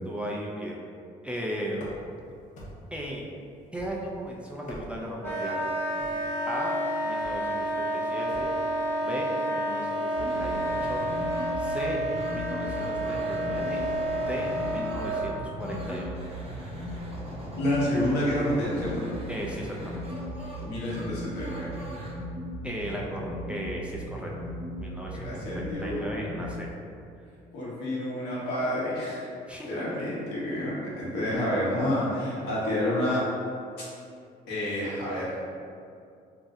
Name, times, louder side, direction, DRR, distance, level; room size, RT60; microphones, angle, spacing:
voice 1, 0.1-0.8 1.2-1.8 2.9-3.3 3.7-5.7 6.5-6.8 7.0-8.5 9.0-11.0 11.6-12.0 12.3-13.8 14.3-16.3 19.3-20.0 22.6-24.3 24.8-26.7 29.5-29.7, equal, 5° right, -3 dB, 0.3 m, -36 dB
sound 1, 1.7-2.2 2.6-3.0 3.7-4.2 4.5-5.2 6.0-6.3 7.2-7.5 8.3-8.6, equal, 50° left, 0.7 m, -43 dB
Wind instrument woodwind instrument, 5.2-15.3, right 1 dB, 15° left, 0.9 m, -30 dB
sound 2, 10.1-26.5, equal, 35° right, 0.8 m, -37 dB
voice 2, 17.6-19.1 20.6-21.7 25.1-26.1 26.3-26.5 27.5-29.3 29.6-33.3 34.5-35.3, left 1 dB, 90° left, -7 dB, 1.0 m, -29 dB
2.7 x 2.0 x 3.5 m, 2.4 s
cardioid pair, 110°, 17 cm